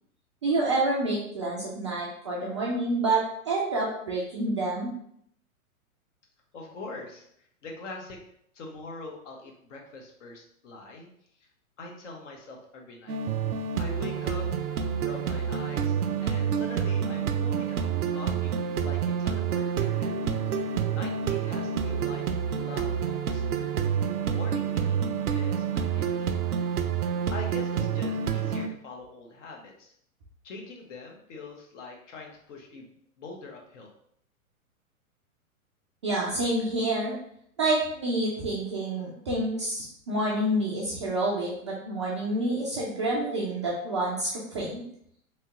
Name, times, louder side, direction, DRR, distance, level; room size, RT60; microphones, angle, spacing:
voice 1, 0.4-4.9 36.0-37.1 37.6-44.8, right 2 dB, 25° right, -5 dB, 0.3 m, -28 dB
voice 2, 6.5-7.2 7.6-8.2 8.5-11.1 11.8-13.2 13.8-14.5 15.0-20.2 20.9-22.2 22.5-22.9 23.3-23.7 24.3-25.1 25.3-26.2 27.3-29.9 30.4-32.9 33.2-33.9, left 3 dB, 55° left, 1 dB, 1.0 m, -43 dB
sound 1, 13.1-28.7, right 7 dB, 90° right, 0.5 m, -28 dB
3.2 x 2.9 x 2.9 m, 0.69 s
figure-of-eight pair, 115°, 44 cm